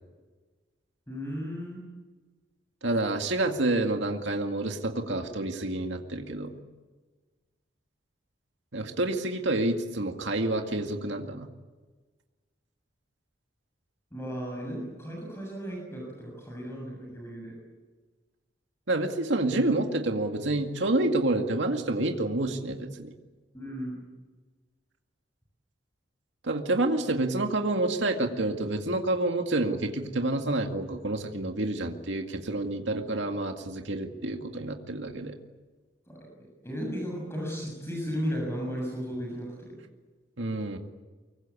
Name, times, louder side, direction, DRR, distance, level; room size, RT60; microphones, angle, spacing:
voice 1, 1.1-1.8 14.1-17.5 23.5-24.1 36.1-39.8, equal, 15° left, -1 dB, 7.0 m, -35 dB
voice 2, 2.8-6.6 8.7-11.5 18.9-23.1 26.4-35.3 40.4-40.8, right 2 dB, 75° right, 4 dB, 2.1 m, -28 dB
24.5 x 23.5 x 8.5 m, 1.3 s
head